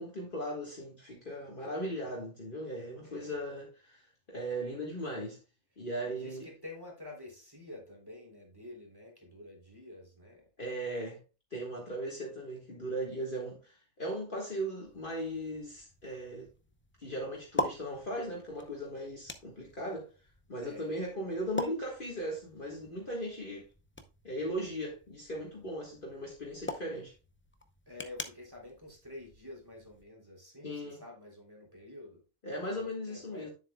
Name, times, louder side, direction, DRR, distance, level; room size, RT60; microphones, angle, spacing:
voice 1, 0.0-5.4 5.8-6.5 10.6-11.2 11.5-16.5 17.0-20.1 20.5-23.7 24.2-27.1 30.6-31.0 32.4-33.5, equal, 40° left, 1.7 m, -38 dB
voice 2, 3.0-3.4 6.0-10.4 20.5-21.0 27.9-32.2 32.7-33.5, left 2 dB, 15° right, 3.2 m, -49 dB
sound 1, 14.8-30.0, left 1 dB, 15° left, 0.4 m, -44 dB
9.8 x 7.4 x 2.3 m
omnidirectional pair, 1.4 m